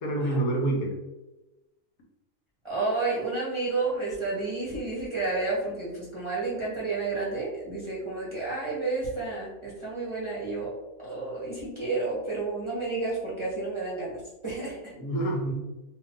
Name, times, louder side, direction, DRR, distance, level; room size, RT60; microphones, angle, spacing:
voice 1, 0.0-0.9 15.0-15.5, right 2 dB, 75° left, 0 dB, 1.2 m, -27 dB
voice 2, 2.6-10.7 11.0-14.9, right 3 dB, 25° right, -8 dB, 0.8 m, -31 dB
2.7 x 2.5 x 3.5 m, 1.0 s
omnidirectional pair, 1.5 m